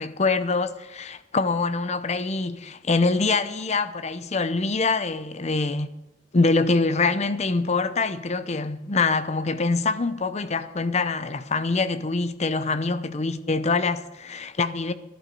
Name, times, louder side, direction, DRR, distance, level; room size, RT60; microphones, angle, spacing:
voice 1, 0.0-5.9 6.3-14.9, left 3 dB, 40° left, 0.7 m, -24 dB
16.0 x 11.5 x 5.3 m
head